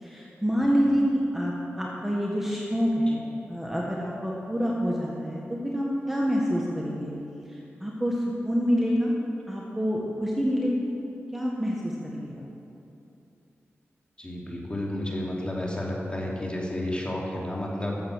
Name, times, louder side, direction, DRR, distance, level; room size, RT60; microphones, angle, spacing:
voice 1, 0.0-3.2 3.5-7.1 7.5-8.2 8.4-9.1 9.5-10.9 11.3-12.4, equal, 5° right, -4 dB, 1.6 m, -27 dB
voice 2, 14.2-18.0, left 1 dB, 20° left, -3 dB, 2.7 m, -31 dB
14.0 x 7.5 x 6.3 m, 2.8 s
cardioid pair, 55°, 5 cm